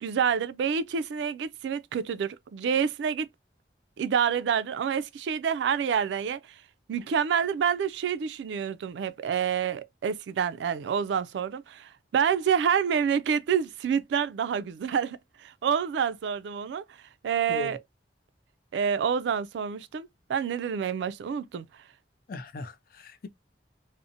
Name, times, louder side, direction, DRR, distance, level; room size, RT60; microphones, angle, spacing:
voice 1, 0.0-3.3 4.0-6.5 6.9-16.8 17.2-17.8 18.7-21.6, right 7 dB, 80° right, 0.3 m, -28 dB
voice 2, 22.3-23.3, left 3 dB, 50° left, 0.4 m, -38 dB
2.6 x 2.0 x 2.5 m
head